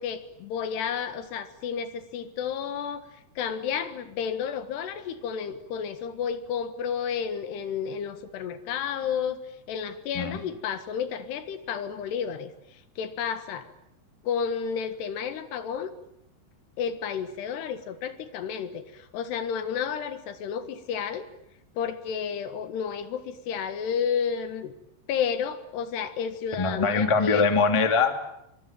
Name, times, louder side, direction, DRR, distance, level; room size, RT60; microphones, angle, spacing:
voice 1, 0.0-3.1 3.4-9.4 9.7-13.7 14.2-16.0 16.8-21.3 21.8-24.7 25.1-27.5, left 7 dB, 70° left, 10 dB, 3.6 m, -31 dB
voice 2, 26.6-28.2, left 4 dB, 10° left, 6 dB, 1.5 m, -22 dB
26.0 x 24.0 x 9.1 m, 0.81 s
omnidirectional pair, 5.1 m